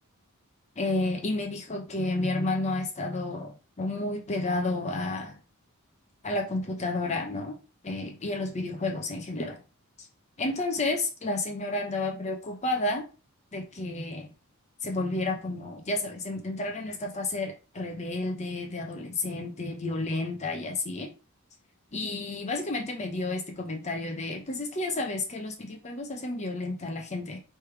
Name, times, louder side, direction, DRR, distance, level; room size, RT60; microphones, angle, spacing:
voice 1, 0.8-5.4 6.2-7.6 7.8-9.6 10.4-13.1 13.5-14.3 14.8-21.1 21.9-27.4, left 2 dB, 30° left, 0.6 m, -31 dB
3.3 x 3.3 x 4.5 m
head